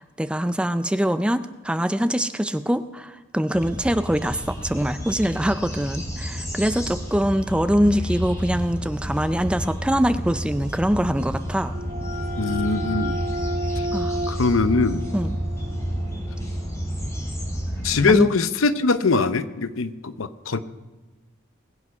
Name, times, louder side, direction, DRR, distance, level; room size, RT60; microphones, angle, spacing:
voice 1, 0.0-11.7 13.9-14.2 15.1-15.4 18.1-18.3, equal, 5° right, 11 dB, 0.4 m, -23 dB
sound 1, 3.5-18.1, equal, 15° left, 4.3 m, -30 dB
sound 2, 11.2-16.7, equal, 45° right, 1.3 m, -33 dB
voice 2, 12.4-13.2 14.3-15.1 17.8-20.6, left 4 dB, 90° left, 12 dB, 0.7 m, -22 dB
20.5 x 8.5 x 5.5 m, 1.2 s
head